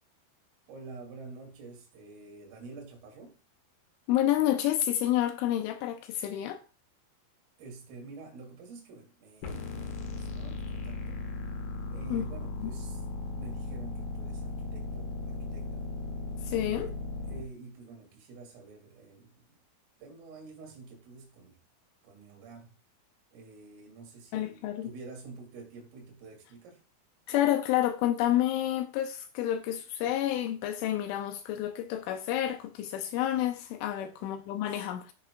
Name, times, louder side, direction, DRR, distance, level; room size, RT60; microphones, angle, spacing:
voice 1, 0.7-3.4 7.6-11.2 11.9-13.0 13.3-15.9 16.5-19.6 20.0-21.6 22.0-22.8 23.3-26.8 34.0-34.8, right 4 dB, 75° right, 5.2 m, -48 dB
voice 2, 4.1-6.6 12.1-12.3 12.6-12.7 16.5-16.9 24.3-24.9 27.3-35.1, left 12 dB, 80° left, 2.9 m, -29 dB
sound 1, 9.4-17.4, left 3 dB, 65° left, 2.6 m, -37 dB
15.5 x 6.5 x 2.4 m
omnidirectional pair, 5.9 m